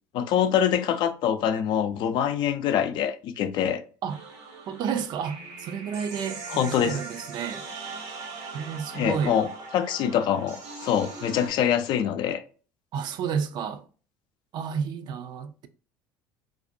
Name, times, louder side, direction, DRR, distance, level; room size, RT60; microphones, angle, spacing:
voice 1, 0.1-3.8 6.5-7.0 8.9-9.5 9.7-12.4, left 9 dB, 55° left, 0.4 m, -25 dB
sound 1, 4.1-11.5, right 3 dB, 70° right, 0.8 m, -40 dB
voice 2, 4.7-7.7 8.5-9.4 12.9-13.8 14.5-15.7, right 7 dB, 50° right, 0.4 m, -31 dB
2.5 x 2.1 x 2.6 m
hypercardioid pair, 80°, 9 cm